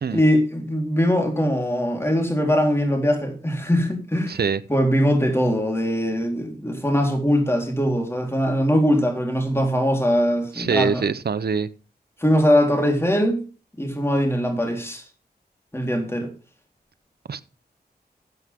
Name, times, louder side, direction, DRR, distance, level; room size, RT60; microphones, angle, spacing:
voice 1, 0.1-4.4 4.7-11.0 12.2-13.4 13.8-15.0 15.7-16.3, equal, 15° left, 3.9 m, -21 dB
voice 2, 4.3-4.6 10.6-11.7 17.3-17.4, right 5 dB, 65° right, 0.7 m, -23 dB
13.5 x 8.1 x 3.6 m
wide cardioid pair, 75°, 17 cm